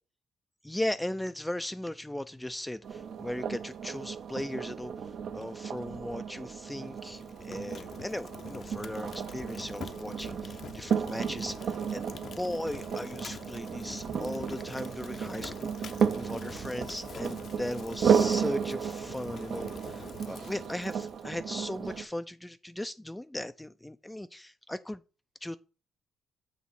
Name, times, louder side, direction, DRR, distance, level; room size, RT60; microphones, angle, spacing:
voice 1, 0.6-25.0 25.4-25.6, left 1 dB, 10° left, 0.3 m, -37 dB
sound 1, 2.8-22.0, right 7 dB, 65° right, 0.6 m, -33 dB
Fire, 6.9-21.3, left 6 dB, 55° left, 0.7 m, -47 dB
7.3 x 3.0 x 5.9 m
cardioid pair, 90°, 0 cm